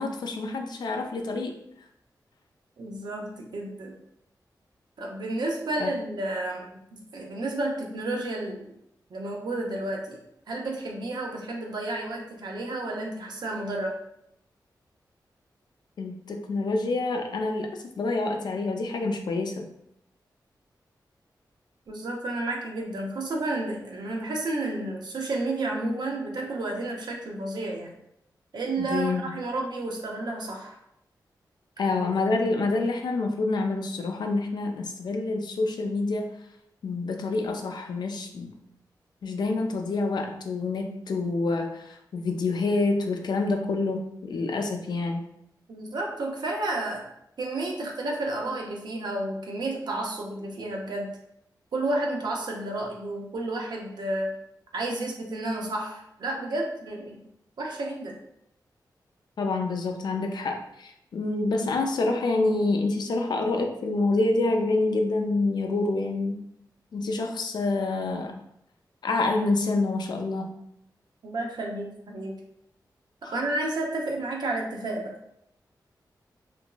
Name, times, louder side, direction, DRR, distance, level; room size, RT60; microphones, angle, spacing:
voice 1, 0.0-1.5 5.8-5.9 16.0-19.7 28.8-29.3 31.8-36.3 36.8-38.6 39.2-45.2 59.4-66.4 66.9-68.4 69.0-70.6 73.2-73.3, left 3 dB, 70° left, 4 dB, 0.4 m, -27 dB
voice 2, 2.8-4.0 5.0-8.7 9.1-10.2 10.5-13.9 21.9-27.9 28.5-30.8 45.7-47.0 47.4-51.1 51.7-54.3 54.7-57.2 57.6-58.2 71.2-72.4 73.3-75.1, right 2 dB, 70° right, 0 dB, 0.6 m, -31 dB
2.9 x 2.5 x 2.2 m, 0.77 s
wide cardioid pair, 75°, 8 cm